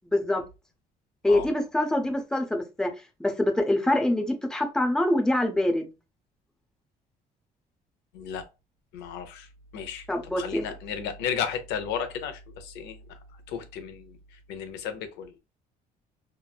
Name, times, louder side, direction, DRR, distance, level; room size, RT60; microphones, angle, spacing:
voice 1, 1.2-2.9 3.2-5.9 10.1-10.6, left 1 dB, 5° left, 0.5 m, -25 dB
voice 2, 8.1-8.5 8.9-10.1 10.4-15.4, left 7 dB, 90° left, 0.5 m, -34 dB
2.9 x 2.1 x 2.2 m
cardioid pair, 110°, 17 cm